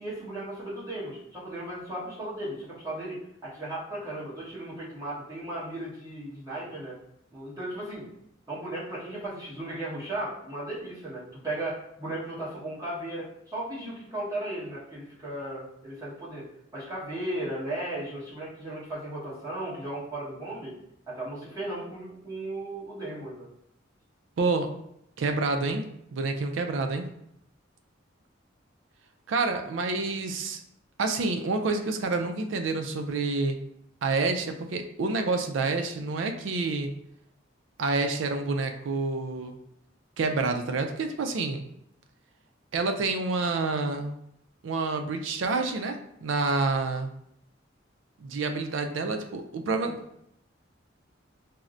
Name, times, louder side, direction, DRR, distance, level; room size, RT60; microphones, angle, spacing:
voice 1, 0.0-6.9 7.3-8.1 8.5-16.4 16.7-20.8 21.1-23.5, right 1 dB, 20° right, -9 dB, 1.1 m, -36 dB
voice 2, 24.4-24.7 25.2-25.9 26.1-27.1 29.3-30.6 31.0-33.6 34.0-36.9 37.8-39.6 40.2-41.6 42.7-44.2 44.6-47.1 48.2-50.0, right 3 dB, 70° right, 5 dB, 0.4 m, -28 dB
4.3 x 2.0 x 2.5 m, 0.76 s
head